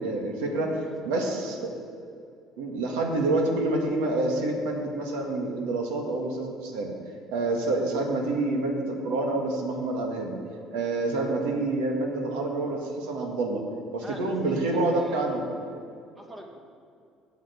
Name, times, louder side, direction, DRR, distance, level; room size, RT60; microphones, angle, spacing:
voice 1, 0.0-0.8 1.0-1.8 2.6-6.9 7.3-10.4 10.7-13.6 13.9-15.5, right 2 dB, 85° right, 1 dB, 1.9 m, -27 dB
voice 2, 14.0-15.3 16.2-16.6, equal, 20° right, 2 dB, 2.1 m, -43 dB
8.1 x 8.0 x 8.1 m, 2.4 s
supercardioid pair, 80°, 0 cm